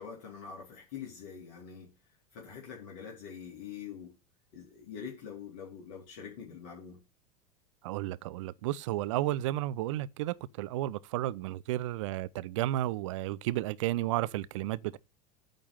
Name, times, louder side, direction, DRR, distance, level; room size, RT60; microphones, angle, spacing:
voice 1, 0.0-1.9 2.3-4.1 4.5-7.0, left 7 dB, 50° left, 2.6 m, -44 dB
voice 2, 7.8-15.0, right 15 dB, 50° right, 0.5 m, -32 dB
9.0 x 3.7 x 6.9 m
figure-of-eight pair, 85°, 20 cm